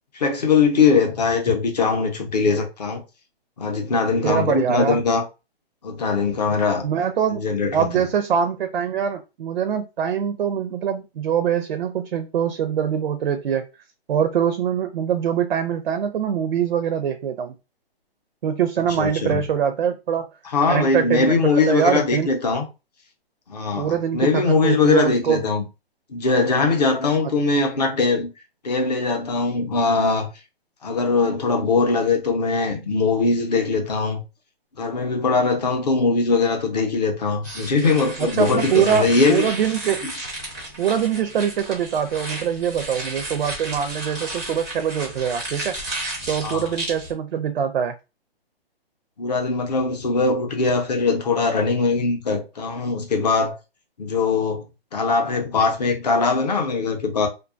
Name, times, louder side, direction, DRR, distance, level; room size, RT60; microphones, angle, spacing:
voice 1, 0.1-3.0 3.6-5.2 5.8-6.9 7.3-8.1 19.0-19.4 20.4-22.6 23.5-25.6 26.1-28.3 28.6-30.3 30.8-34.2 34.8-39.5 40.0-40.1 46.4-46.7 49.2-53.5 54.0-54.6 54.9-57.3, left 4 dB, 40° left, 0.6 m, -21 dB
voice 2, 4.2-5.0 6.8-7.4 7.7-13.6 14.1-17.5 18.4-20.3 20.7-22.3 23.8-25.4 38.2-40.0 40.8-45.7 46.3-47.9, right 8 dB, 65° right, 0.4 m, -23 dB
sound 1, 37.4-47.1, right 1 dB, 5° right, 0.4 m, -33 dB
2.6 x 2.3 x 2.4 m
hypercardioid pair, 170°, 31 cm